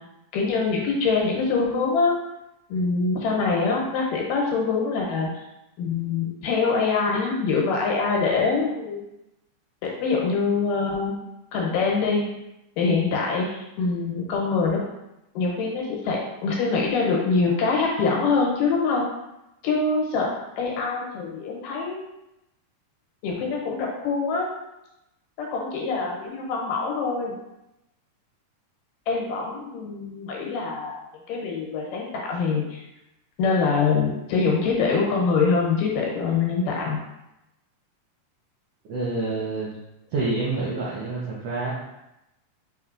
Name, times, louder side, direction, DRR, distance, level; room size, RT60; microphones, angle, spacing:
voice 1, 0.3-2.1 2.7-5.3 5.8-9.0 10.0-11.1 11.5-12.2 12.8-14.8 15.3-19.1 19.6-20.3 20.6-22.0 23.2-24.5 25.4-27.4 29.1-30.9 31.3-32.8 33.4-37.0, left 4 dB, 90° left, -2 dB, 2.6 m, -24 dB
voice 2, 38.9-39.7 40.1-41.7, right 3 dB, 75° right, -6 dB, 1.4 m, -27 dB
5.6 x 3.2 x 2.5 m, 0.90 s
omnidirectional pair, 3.7 m